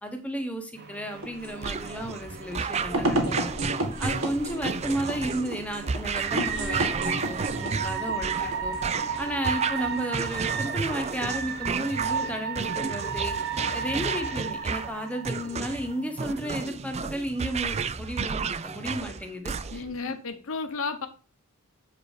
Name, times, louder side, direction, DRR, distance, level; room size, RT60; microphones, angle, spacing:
voice 1, 0.0-3.5 4.0-8.8 9.2-13.4 13.7-20.1, equal, 5° left, 1.2 m, -33 dB
sound 1, 0.8-16.7, right 5 dB, 50° right, 1.0 m, -35 dB
sound 2, 1.1-9.3, right 1 dB, 65° right, 1.9 m, -32 dB
sound 3, 1.6-20.0, right 5 dB, 30° right, 0.4 m, -32 dB
voice 2, 19.7-21.1, left 4 dB, 65° left, 0.8 m, -32 dB
7.7 x 4.8 x 4.8 m
head